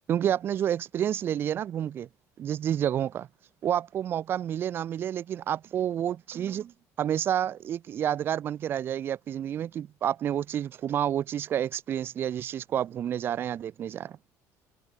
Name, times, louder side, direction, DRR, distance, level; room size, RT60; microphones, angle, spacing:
voice 1, 0.1-2.1 2.4-3.3 3.6-6.7 7.0-14.2, right 10 dB, 35° right, 1.3 m, -29 dB
cardioid pair, 175°, 7 cm